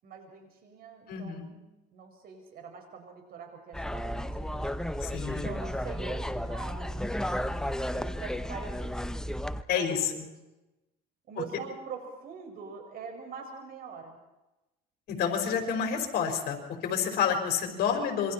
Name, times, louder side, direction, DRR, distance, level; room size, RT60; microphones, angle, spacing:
voice 1, 0.0-4.7 5.3-7.2 7.9-9.0 9.7-10.2 11.3-14.2, right 5 dB, 60° right, 4 dB, 6.0 m, -44 dB
voice 2, 1.1-1.5 5.0-5.5 9.7-10.0 15.1-16.6 16.8-18.3, left 7 dB, 70° left, 4 dB, 4.8 m, -29 dB
sound 1, 3.7-9.6, equal, 5° left, 0.8 m, -33 dB
26.5 x 24.0 x 4.5 m, 1.0 s
cardioid pair, 110°, 17 cm